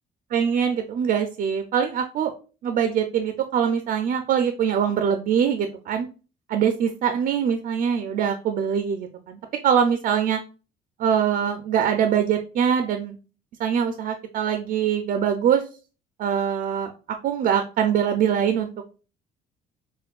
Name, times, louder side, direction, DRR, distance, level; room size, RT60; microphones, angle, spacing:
voice 1, 0.3-2.3 2.6-6.1 6.5-10.4 11.0-13.2 13.6-15.6 16.2-16.9 17.2-18.7, right 8 dB, 55° right, 6 dB, 0.4 m, -23 dB
4.3 x 2.2 x 2.3 m, 0.35 s
cardioid pair, 110°, 17 cm